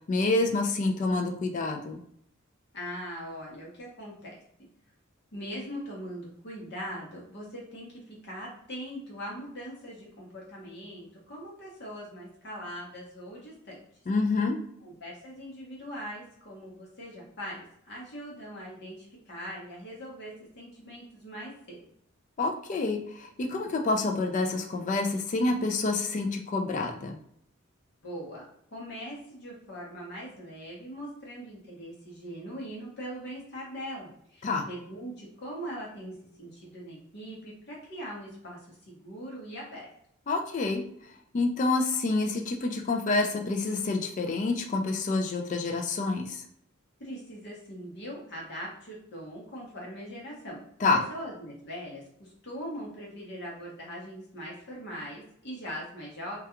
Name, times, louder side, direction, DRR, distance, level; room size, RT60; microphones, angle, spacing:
voice 1, 0.1-2.0 14.1-14.6 22.4-27.2 34.4-34.7 40.3-40.8 41.3-46.4 50.8-51.0, left 3 dB, 35° left, 4 dB, 0.3 m, -28 dB
voice 2, 2.7-4.4 5.3-13.8 14.8-21.8 28.0-39.9 47.0-50.6 51.1-56.4, equal, 50° left, -4 dB, 0.8 m, -41 dB
2.3 x 2.2 x 2.9 m, 0.70 s
head